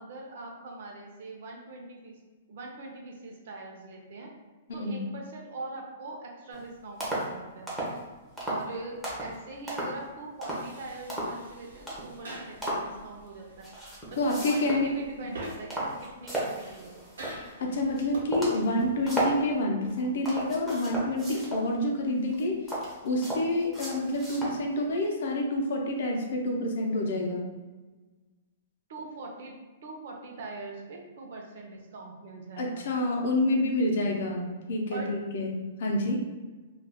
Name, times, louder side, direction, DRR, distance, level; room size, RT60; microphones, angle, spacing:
voice 1, 0.0-2.2 2.5-4.3 4.7-7.7 8.4-13.7 14.1-17.0 28.9-29.5 29.8-32.8 34.9-35.1, right 2 dB, 50° right, 0 dB, 0.6 m, -42 dB
sound 1, 6.5-6.6 7.0-7.3 7.7-8.0 8.4-8.7 9.0-9.4 9.7-10.0 10.4-10.7 11.1-11.4 11.9-12.2 12.6-12.9 13.6-14.9 15.3-17.5 17.9-18.0 18.3-19.4 19.9-21.7 22.3-24.6 25.0-25.1, right 1 dB, ahead, 0.5 m, -34 dB
sound 2, 10.5-19.6, right 1 dB, 85° right, 0.9 m, -47 dB
voice 2, 14.2-14.9 17.6-22.6 23.0-27.5 32.6-36.2, left 1 dB, 55° left, 0 dB, 0.6 m, -28 dB
2.3 x 2.2 x 3.4 m, 1.3 s
hypercardioid pair, 175°, 0 cm